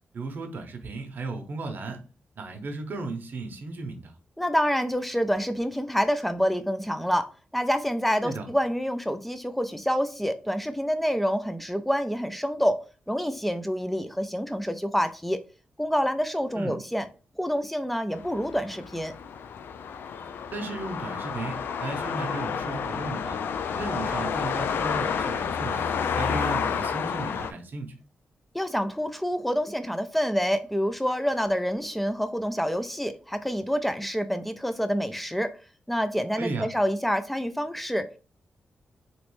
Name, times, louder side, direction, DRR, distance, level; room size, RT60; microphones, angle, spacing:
voice 1, 0.1-2.0 2.4-4.1 8.2-8.5 16.5-16.8 20.5-23.4 23.7-25.8 26.1-27.9 36.4-36.7, right 3 dB, 60° right, 0.7 m, -35 dB
voice 2, 4.4-12.8 13.1-15.4 15.8-17.1 17.4-19.1 28.5-35.5 35.9-38.2, equal, 5° left, 0.4 m, -27 dB
sound 1, 18.1-27.5, left 6 dB, 80° left, 0.3 m, -30 dB
3.1 x 3.0 x 3.1 m
cardioid pair, 95°, 4 cm